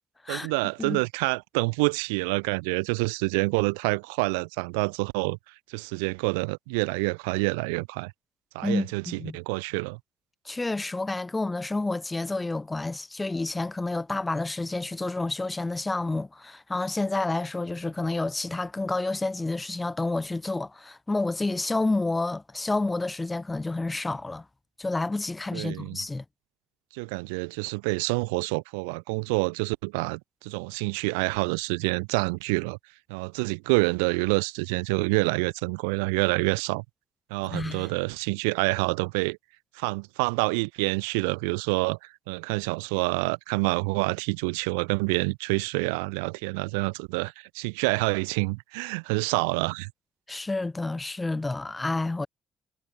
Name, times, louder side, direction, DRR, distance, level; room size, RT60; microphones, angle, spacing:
voice 1, 0.3-5.4 5.7-8.1 8.5-10.0 25.5-26.0 26.9-32.8 33.1-36.8 37.3-39.4 39.8-42.0 42.3-49.9, right 31 dB, 80° right, 1.9 m, -27 dB
voice 2, 8.6-9.4 10.4-24.4 24.8-26.2 37.4-37.9 50.3-52.3, left 2 dB, 20° left, 1.3 m, -29 dB
hypercardioid pair, 45°, 0 cm